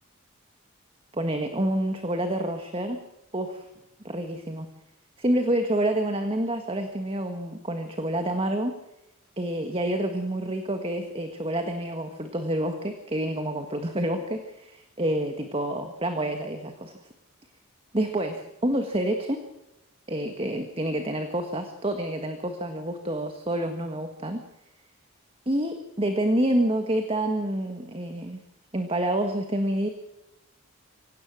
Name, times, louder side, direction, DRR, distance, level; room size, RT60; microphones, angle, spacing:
voice 1, 1.1-3.0 3.3-3.6 4.0-4.7 5.2-8.7 9.4-16.9 17.9-19.4 20.1-24.4 25.4-28.4 28.7-29.9, right 1 dB, 25° right, 6 dB, 1.7 m, -28 dB
24.5 x 17.5 x 6.4 m, 0.90 s
head